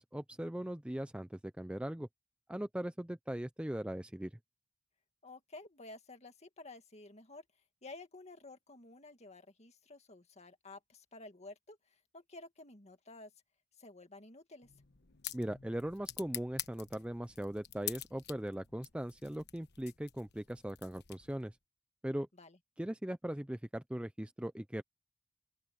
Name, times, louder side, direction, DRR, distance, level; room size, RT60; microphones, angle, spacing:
voice 1, 0.0-2.1 2.5-4.3 15.3-21.6 22.0-22.3 22.8-24.8, right 1 dB, 5° right, 0.5 m, -39 dB
voice 2, 5.2-7.4 7.8-13.3 13.8-14.7 22.4-22.6, left 2 dB, 35° left, 2.1 m, -52 dB
sound 1, 14.6-21.5, left 13 dB, 55° left, 1.1 m, -47 dB
open air
head